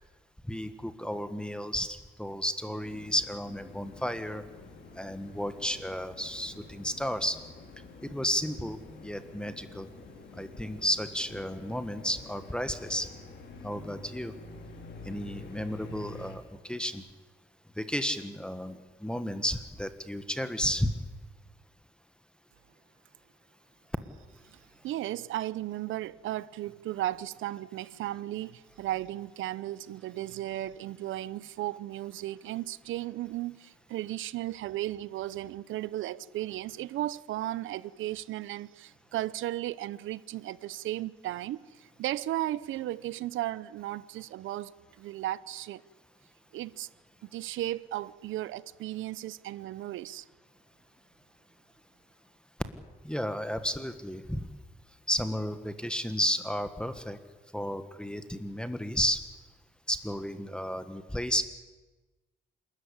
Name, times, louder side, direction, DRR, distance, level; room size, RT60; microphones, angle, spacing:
voice 1, 0.5-4.4 5.0-7.4 8.0-9.9 10.3-13.1 13.6-14.3 15.0-17.0 17.8-20.9 53.0-54.5 55.1-57.2 57.5-59.2 59.9-61.4, equal, 5° left, 1.5 m, -32 dB
sound 1, 2.8-16.4, left 3 dB, 60° left, 4.6 m, -48 dB
voice 2, 24.8-45.8 46.5-46.9 47.2-50.2, right 14 dB, 80° right, 0.7 m, -35 dB
27.5 x 13.5 x 9.8 m
cardioid pair, 90°, 20 cm